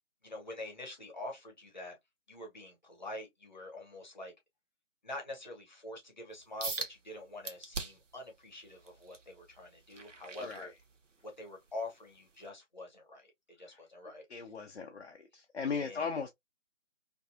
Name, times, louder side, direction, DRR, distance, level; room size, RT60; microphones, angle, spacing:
voice 1, 0.2-2.0 2.3-4.3 5.0-10.7 11.2-14.3 15.7-16.1, left 2 dB, 35° left, 0.9 m, -45 dB
sound 1, 6.6-6.9 7.4-8.1 8.6-11.2 11.7-11.9 12.5-12.6, right 4 dB, 75° right, 0.7 m, -41 dB
voice 2, 10.4-10.7 13.6-13.8 14.3-16.3, left 5 dB, 55° left, 0.5 m, -38 dB
2.6 x 2.2 x 2.4 m
figure-of-eight pair, 155°, 38 cm